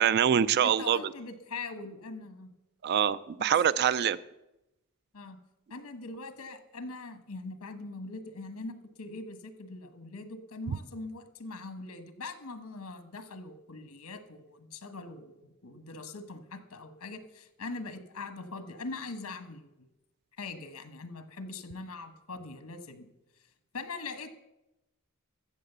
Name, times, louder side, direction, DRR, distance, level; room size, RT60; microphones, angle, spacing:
voice 1, 0.0-1.0 2.8-4.2, right 9 dB, 50° right, 18 dB, 0.3 m, -24 dB
voice 2, 0.6-2.5 3.8-4.1 5.1-5.4 5.7-19.7 20.4-23.1 23.7-24.3, left 3 dB, 85° left, 10 dB, 1.2 m, -42 dB
14.0 x 7.5 x 6.7 m, 0.93 s
head